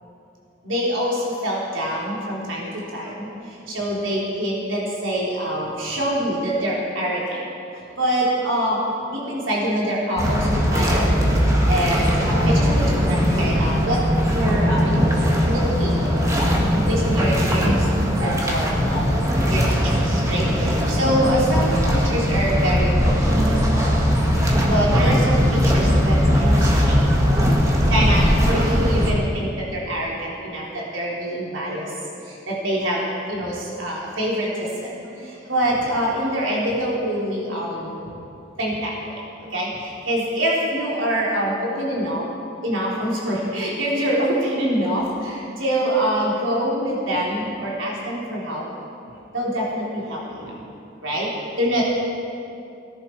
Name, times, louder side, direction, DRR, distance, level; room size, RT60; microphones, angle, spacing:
voice 1, 0.6-7.4 8.0-8.8 9.1-11.2 11.6-14.0 14.3-16.1 16.7-24.0 24.7-27.0 27.9-31.9 32.2-33.0 33.3-38.1 38.6-39.1 39.5-42.2 42.6-48.7 49.3-50.5 51.0-51.3 51.6-51.8, equal, 80° right, -4 dB, 3.7 m, -25 dB
sound 1, 10.2-29.1, equal, 15° right, 1.7 m, -19 dB
18.5 x 11.0 x 4.6 m, 2.6 s
head